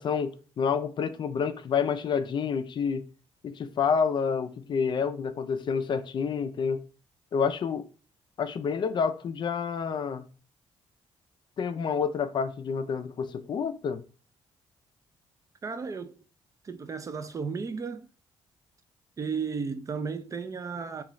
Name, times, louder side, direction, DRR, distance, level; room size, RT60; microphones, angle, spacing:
voice 1, 0.0-3.1 3.4-6.8 7.3-7.8 8.4-10.2 11.6-14.0, left 6 dB, 45° left, 0.4 m, -28 dB
voice 2, 15.6-16.2 16.6-18.1 19.2-21.0, right 5 dB, 30° right, 0.3 m, -34 dB
3.7 x 2.3 x 3.1 m
cardioid pair, 95°, 11 cm